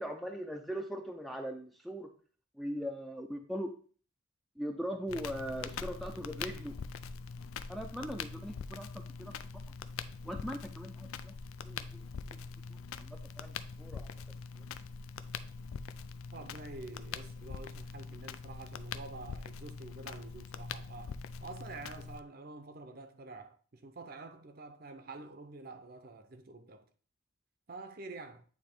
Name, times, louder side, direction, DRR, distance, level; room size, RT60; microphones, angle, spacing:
voice 1, 0.0-2.1 2.6-3.7 4.6-6.8 7.7-8.9 9.2-9.6 10.2-11.3 11.6-12.4 13.0-14.1, equal, ahead, 0.5 m, -40 dB
Crackle, 5.1-22.2, left 5 dB, 90° left, 0.4 m, -43 dB
voice 2, 16.3-26.8 27.7-28.4, right 3 dB, 45° right, 0.7 m, -48 dB
8.7 x 3.0 x 4.4 m
head